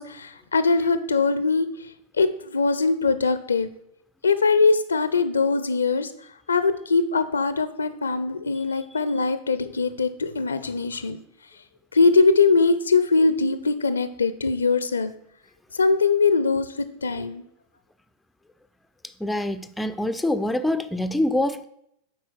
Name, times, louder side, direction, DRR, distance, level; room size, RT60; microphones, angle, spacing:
voice 1, 0.0-1.7 2.2-3.7 4.2-6.1 6.5-11.2 11.9-15.1 15.7-17.4, left 4 dB, 75° left, 12 dB, 0.6 m, -21 dB
voice 2, 19.2-21.7, left 1 dB, 5° left, 10 dB, 0.5 m, -25 dB
8.1 x 4.5 x 6.0 m, 0.74 s
figure-of-eight pair, 90°, 0 cm